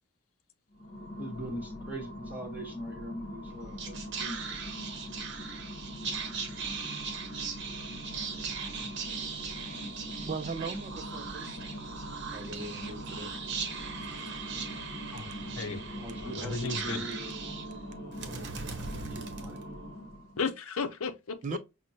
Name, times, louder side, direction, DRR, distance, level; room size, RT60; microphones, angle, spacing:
sound 1, 0.7-20.5, equal, 50° left, 0.9 m, -43 dB
voice 1, 1.2-4.7 16.0-17.3 18.2-19.6, equal, 10° right, 1.0 m, -42 dB
Whispering, 3.5-20.1, right 5 dB, 55° right, 0.8 m, -39 dB
voice 2, 9.0-11.6 12.3-13.3 15.4-15.5 15.9-16.0 21.4-21.6, right 4 dB, 35° right, 0.3 m, -40 dB
voice 3, 15.6-15.9 16.2-17.0 20.4-21.6, left 5 dB, 85° left, 0.6 m, -34 dB
5.9 x 2.1 x 2.6 m
head